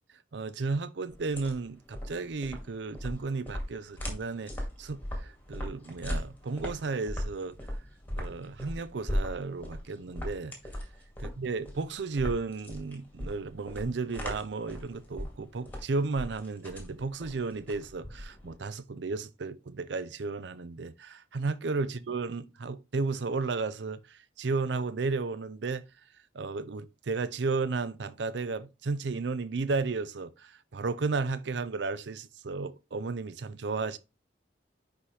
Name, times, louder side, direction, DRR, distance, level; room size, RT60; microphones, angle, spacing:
voice 1, 0.3-4.5 4.8-7.6 8.1-10.5 11.2-25.8 26.3-34.0, right 4 dB, 75° right, 0.5 m, -33 dB
sound 1, 1.1-18.6, equal, 10° left, 2.0 m, -38 dB
10.0 x 4.3 x 3.2 m
head